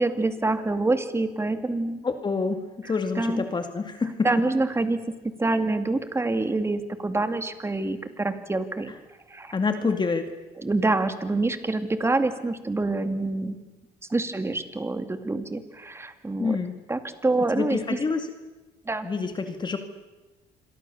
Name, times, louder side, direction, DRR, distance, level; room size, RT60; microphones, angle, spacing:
voice 1, 0.0-2.1 3.2-3.5 4.2-5.0 5.4-8.9 9.3-9.5 10.6-13.6 14.1-16.6 16.9-18.0 18.8-19.1, right 2 dB, 15° right, 9 dB, 2.4 m, -26 dB
voice 2, 2.0-2.6 2.8-4.3 9.5-10.3 16.4-16.7 17.5-18.3 19.0-19.8, left 4 dB, 25° left, 7 dB, 2.3 m, -27 dB
27.5 x 23.5 x 7.1 m, 1.2 s
cardioid pair, 110°, 17 cm